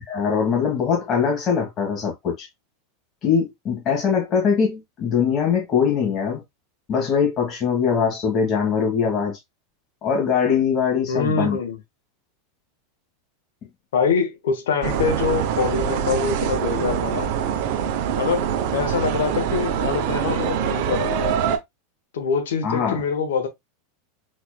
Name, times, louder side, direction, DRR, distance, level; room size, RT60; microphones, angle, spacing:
voice 1, 0.1-2.5 3.2-6.4 6.9-9.4 10.0-11.6 22.6-23.0, left 6 dB, 35° left, 1.6 m, -22 dB
voice 2, 11.1-11.8 13.9-17.3 18.2-21.3 22.1-23.5, left 5 dB, 85° left, 1.1 m, -24 dB
sound 1, 14.8-21.6, right 8 dB, 60° right, 0.7 m, -24 dB
4.2 x 3.1 x 2.2 m
supercardioid pair, 125°, 0 cm